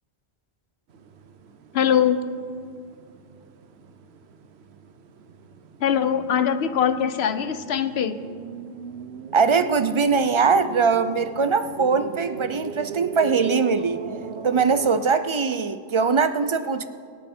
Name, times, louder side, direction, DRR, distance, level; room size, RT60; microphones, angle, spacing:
sound 1, 0.9-15.0, right 6 dB, 70° right, 1.0 m, -39 dB
voice 1, 1.7-2.2 5.8-8.2, left 8 dB, 70° left, 11 dB, 1.0 m, -22 dB
voice 2, 9.3-14.0 14.4-16.9, right 5 dB, 45° right, 11 dB, 0.4 m, -21 dB
24.0 x 8.8 x 4.4 m, 2.1 s
omnidirectional pair, 1.1 m